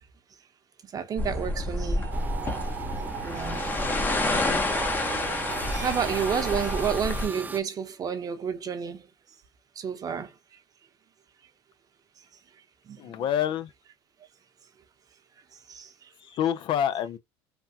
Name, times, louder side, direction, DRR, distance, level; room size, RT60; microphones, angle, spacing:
voice 1, 0.8-2.1 2.5-2.6 3.2-3.6 5.2-5.3 5.7-9.1 9.8-10.3 12.9-13.0 15.7-16.1, right 7 dB, 35° right, 0.8 m, -30 dB
sound 1, 1.2-7.3, left 2 dB, 15° left, 0.8 m, -29 dB
sound 2, 2.0-7.0, right 11 dB, 70° right, 0.5 m, -38 dB
sound 3, 2.1-7.6, right 3 dB, 15° right, 0.4 m, -40 dB
voice 2, 13.0-13.7 16.2-17.2, left 10 dB, 50° left, 0.4 m, -27 dB
3.3 x 2.3 x 2.7 m
supercardioid pair, 110°, 11 cm